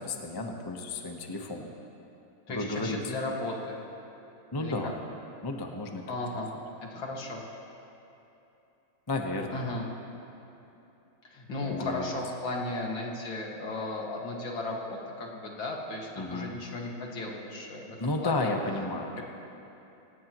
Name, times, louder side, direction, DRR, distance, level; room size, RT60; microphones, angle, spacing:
voice 1, 0.0-1.6 2.5-3.0 4.5-5.0 5.4-6.0 9.1-9.6 11.7-12.1 16.2-16.5 18.0-19.2, left 2 dB, 20° left, 2 dB, 0.6 m, -32 dB
voice 2, 2.5-3.8 4.6-4.9 6.1-6.5 6.8-7.4 9.5-9.8 11.2-18.0 18.2-18.5 19.2-19.3, left 2 dB, 65° left, -1 dB, 2.8 m, -35 dB
25.0 x 18.0 x 3.1 m, 2.9 s
omnidirectional pair, 2.3 m